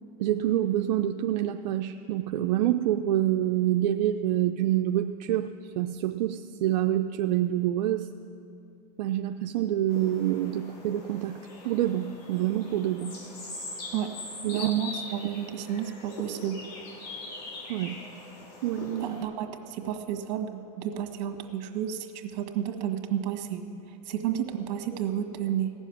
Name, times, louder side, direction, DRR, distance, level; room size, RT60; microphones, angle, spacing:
voice 1, 0.2-5.5 5.8-8.1 9.0-11.4 11.6-13.2 14.4-14.7 17.7-18.0 18.6-19.2, right 12 dB, 90° right, 6 dB, 0.5 m, -27 dB
sound 1, 9.9-19.2, left 2 dB, 65° left, 3.9 m, -42 dB
voice 2, 14.5-16.6 19.0-25.7, right 10 dB, 70° right, 5 dB, 1.6 m, -31 dB
16.5 x 7.2 x 9.9 m, 2.6 s
supercardioid pair, 110°, 21 cm